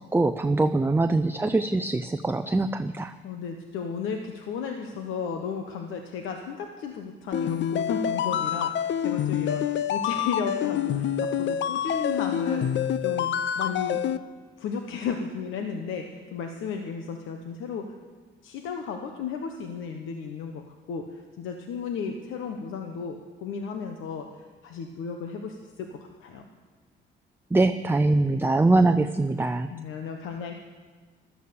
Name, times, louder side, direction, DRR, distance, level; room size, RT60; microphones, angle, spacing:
voice 1, 0.0-3.1 27.5-29.7, right 2 dB, 10° right, 8 dB, 0.6 m, -23 dB
voice 2, 3.2-14.0 14.6-17.9 18.4-20.6 20.9-24.3 24.6-26.5 29.7-30.6, left 6 dB, 85° left, 4 dB, 1.2 m, -34 dB
sound 1, 7.3-14.2, left 9 dB, 65° left, 0.7 m, -27 dB
15.5 x 12.5 x 6.9 m, 1.4 s
cardioid pair, 90°, 20 cm